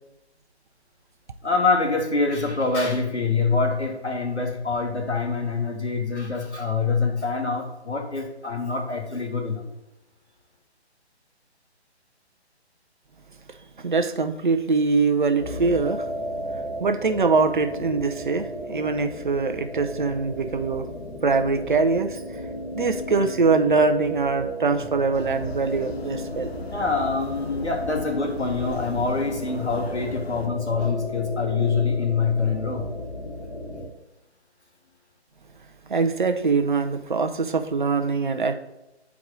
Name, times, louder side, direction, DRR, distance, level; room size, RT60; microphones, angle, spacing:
voice 1, 1.4-9.6 26.7-32.9, left 4 dB, 80° left, 3 dB, 1.8 m, -25 dB
voice 2, 13.8-16.1 16.8-20.9 21.2-22.4 22.7-26.5 35.9-38.5, right 4 dB, 45° right, 8 dB, 0.6 m, -23 dB
sound 1, 15.4-33.9, equal, 50° left, 2.0 m, -35 dB
sound 2, 25.1-30.5, left 2 dB, 65° left, 0.9 m, -39 dB
8.2 x 4.8 x 3.7 m, 0.91 s
figure-of-eight pair, 145°, 34 cm